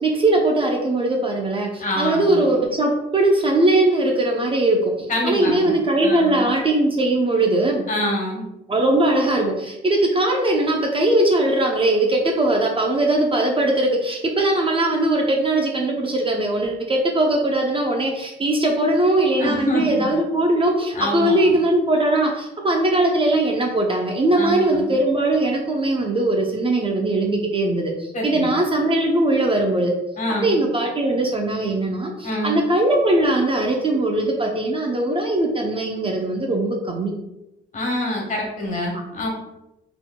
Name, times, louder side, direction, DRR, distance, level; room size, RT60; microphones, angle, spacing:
voice 1, 0.0-7.8 8.7-29.9 30.4-37.1, right 1 dB, 25° right, 1 dB, 0.6 m, -20 dB
voice 2, 1.8-2.5 5.1-5.7 6.0-6.5 7.9-8.5 19.4-20.1 20.9-21.5 24.3-25.0 28.1-28.5 30.2-30.6 32.2-32.6 37.7-39.3, left 1 dB, 40° left, -1 dB, 1.4 m, -26 dB
3.9 x 3.9 x 2.2 m, 0.91 s
cardioid pair, 90°, 20 cm